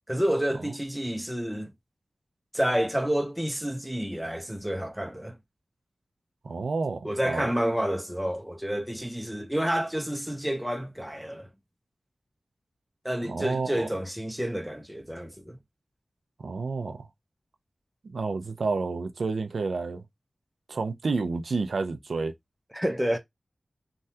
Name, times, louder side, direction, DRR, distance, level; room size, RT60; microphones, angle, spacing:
voice 1, 0.1-1.7 2.5-5.4 7.0-11.5 13.0-15.6 22.7-23.2, equal, 5° right, 0.6 m, -29 dB
voice 2, 6.4-7.5 13.2-13.9 16.4-17.1 18.0-20.0 20.7-22.3, right 4 dB, 90° right, 0.4 m, -30 dB
3.4 x 2.2 x 2.7 m
wide cardioid pair, 80°, 0 cm